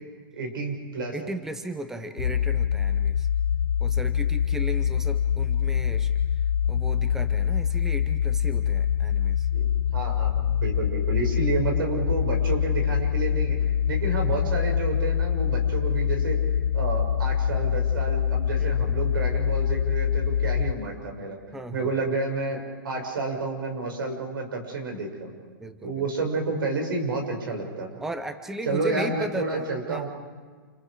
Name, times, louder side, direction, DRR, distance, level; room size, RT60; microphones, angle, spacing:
voice 1, 0.3-1.2 9.5-13.6 13.9-16.4 16.7-21.4 21.7-25.3 25.8-27.9 28.6-30.1, right 3 dB, 80° right, 2 dB, 6.4 m, -30 dB
voice 2, 1.1-3.3 3.8-6.1 6.7-9.5 18.6-18.9 21.5-21.9 25.6-26.0 28.0-30.1, right 1 dB, 5° right, 9 dB, 0.7 m, -36 dB
sound 1, 2.2-20.7, left 8 dB, 75° left, 0.6 m, -25 dB
29.0 x 28.0 x 5.0 m, 1.5 s
hypercardioid pair, 160°, 11 cm